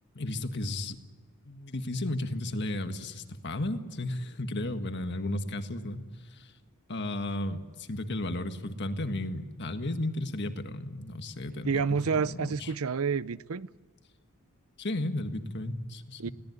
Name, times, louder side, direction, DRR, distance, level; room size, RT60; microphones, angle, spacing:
voice 1, 0.1-1.0 1.4-6.5 6.9-12.7 14.8-16.3, left 1 dB, 50° left, 1.6 m, -34 dB
voice 2, 11.5-13.7 16.2-16.3, right 5 dB, 70° right, 0.6 m, -29 dB
22.0 x 17.5 x 9.5 m
head